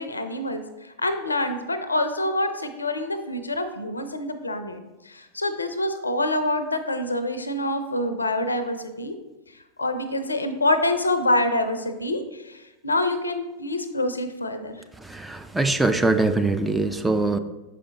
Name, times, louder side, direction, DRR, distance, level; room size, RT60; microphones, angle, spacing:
voice 1, 0.0-4.8 5.1-9.1 9.8-14.7, left 1 dB, 80° left, 9 dB, 0.5 m, -26 dB
voice 2, 15.0-17.4, right 2 dB, 5° right, 8 dB, 0.3 m, -23 dB
7.1 x 4.9 x 2.9 m, 1.1 s
figure-of-eight pair, 90°, 0 cm